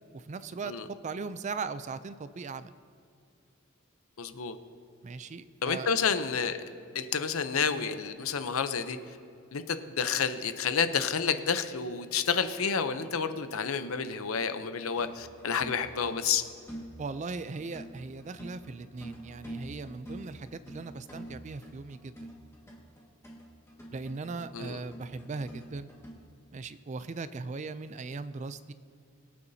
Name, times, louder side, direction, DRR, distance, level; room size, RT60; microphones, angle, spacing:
voice 1, 0.1-2.7 5.0-5.9 17.0-22.3 23.9-25.9 26.5-28.7, right 4 dB, 35° right, 14 dB, 0.3 m, -39 dB
voice 2, 4.2-4.6 5.6-6.6 6.9-9.2 9.5-16.4 24.5-24.8, left 6 dB, 85° left, 10 dB, 0.7 m, -30 dB
sound 1, 14.5-26.1, equal, 15° left, 1.7 m, -46 dB
21.5 x 8.5 x 2.8 m, 2.6 s
head